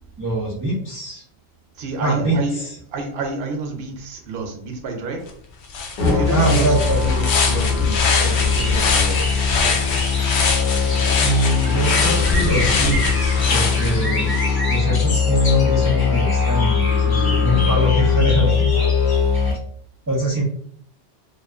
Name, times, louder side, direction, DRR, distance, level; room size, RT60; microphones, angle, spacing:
voice 1, 0.2-1.2 2.0-2.8 6.3-7.0 11.2-14.4 14.7-18.7 20.1-20.5, equal, 25° right, -6 dB, 0.5 m, -22 dB
voice 2, 1.8-2.6 2.9-5.2 6.1-6.7 7.0-10.1, right 3 dB, 70° right, 3 dB, 0.8 m, -29 dB
sound 1, 5.3-5.4 5.7-14.5, left 4 dB, 85° left, 0.9 m, -23 dB
Musical instrument, 6.0-19.5, left 5 dB, 55° left, 0.8 m, -20 dB
sound 2, 8.5-19.6, left 1 dB, 35° left, 0.4 m, -30 dB
2.5 x 2.3 x 2.4 m, 0.62 s
omnidirectional pair, 1.1 m